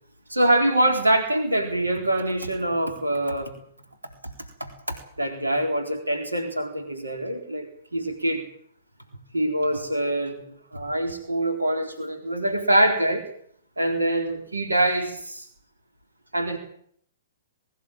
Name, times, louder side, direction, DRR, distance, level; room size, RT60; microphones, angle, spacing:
voice 1, 0.3-3.5 4.6-7.7 7.9-8.4 9.3-10.5 10.7-13.3 13.8-15.5 16.3-16.6, right 1 dB, 75° right, 5 dB, 3.9 m, -24 dB
22.5 x 15.5 x 9.0 m, 0.65 s
figure-of-eight pair, 115°, 0 cm